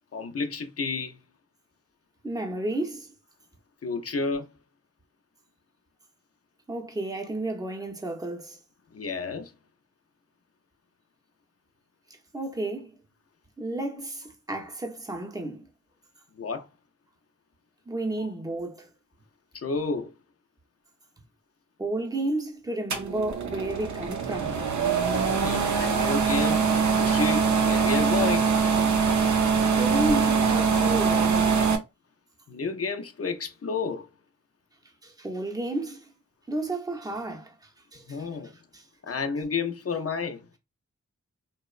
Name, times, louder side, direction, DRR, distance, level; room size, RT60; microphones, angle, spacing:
voice 1, 0.1-1.2 3.8-4.5 8.9-9.5 16.4-16.7 19.5-20.1 25.4-26.6 27.0-28.5 32.5-34.1 38.1-38.5 39.0-40.4, left 4 dB, 50° left, 0.5 m, -30 dB
voice 2, 2.2-3.1 6.7-8.6 12.1-13.0 13.6-15.7 17.9-18.9 21.8-24.6 29.8-31.7 35.0-36.1 36.5-38.8, right 2 dB, 10° right, 0.6 m, -32 dB
sound 1, 22.9-31.8, right 5 dB, 65° right, 0.5 m, -23 dB
2.8 x 2.0 x 2.4 m
wide cardioid pair, 70°, 31 cm